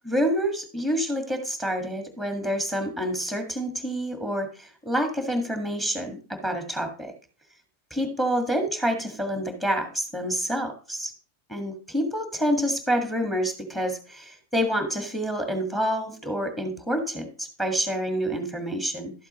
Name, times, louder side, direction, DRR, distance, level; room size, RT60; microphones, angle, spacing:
voice 1, 0.0-7.1 7.9-11.1 11.5-19.1, equal, 10° left, 6 dB, 1.7 m, -28 dB
12.0 x 7.9 x 3.0 m, 0.38 s
figure-of-eight pair, 90°, 0 cm